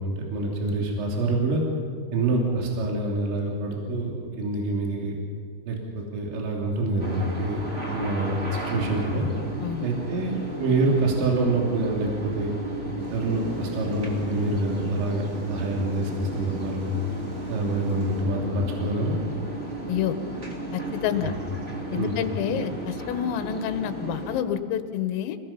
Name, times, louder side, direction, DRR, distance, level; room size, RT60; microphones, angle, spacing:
voice 1, 0.0-1.6 2.1-5.2 5.7-9.3 9.8-12.5 13.1-16.9 17.5-19.2 22.0-22.1, right 2 dB, 65° right, -2 dB, 5.0 m, -26 dB
sound 1, 7.0-24.4, right 1 dB, 25° right, 1.6 m, -34 dB
Thunder, 13.0-18.2, right 3 dB, 85° right, 6.0 m, -41 dB
voice 2, 20.7-21.4 21.9-25.4, left 10 dB, 80° left, 9 dB, 3.7 m, -28 dB
27.5 x 18.5 x 5.9 m, 2.2 s
omnidirectional pair, 5.9 m